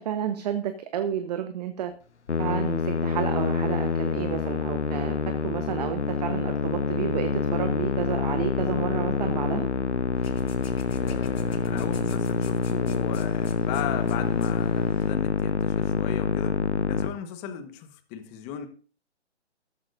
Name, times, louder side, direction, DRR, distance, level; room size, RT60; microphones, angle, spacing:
voice 1, 0.0-1.9 2.4-9.7 17.5-17.6, right 9 dB, 35° right, 9 dB, 1.1 m, -31 dB
Musical instrument, 2.3-17.1, left 5 dB, 85° left, 1.0 m, -26 dB
sound 1, 10.1-15.1, left 2 dB, 60° left, 3.1 m, -43 dB
voice 2, 11.0-16.6 16.9-18.7, left 10 dB, 20° left, 9 dB, 1.3 m, -37 dB
14.0 x 13.5 x 2.6 m, 0.39 s
figure-of-eight pair, 140°, 34 cm